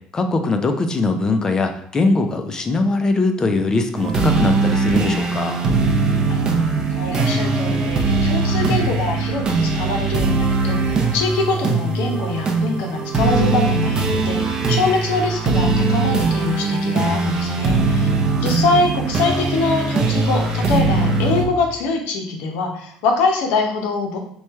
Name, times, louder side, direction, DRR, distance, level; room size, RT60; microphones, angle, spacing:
voice 1, 0.1-5.6, left 3 dB, 25° left, 6 dB, 0.4 m, -21 dB
sound 1, 3.9-21.4, right 3 dB, 30° right, 0.6 m, -20 dB
voice 2, 6.9-18.1 18.4-24.2, left 3 dB, 80° left, 2 dB, 0.7 m, -23 dB
3.1 x 2.2 x 4.3 m, 0.65 s
cardioid pair, 115°, 3 cm